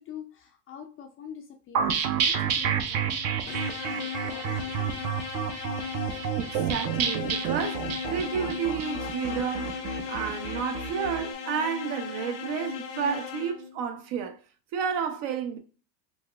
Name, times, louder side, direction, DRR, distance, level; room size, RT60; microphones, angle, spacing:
voice 1, 0.0-5.0, left 8 dB, 30° left, 0.4 m, -45 dB
sound 1, 1.7-11.2, right 7 dB, 35° right, 0.5 m, -30 dB
sound 2, 3.5-13.8, left 7 dB, 85° left, 0.9 m, -36 dB
voice 2, 6.4-9.8 10.1-14.4 14.7-15.6, right 7 dB, 60° right, 0.8 m, -31 dB
4.0 x 2.4 x 2.3 m
supercardioid pair, 105°, 48 cm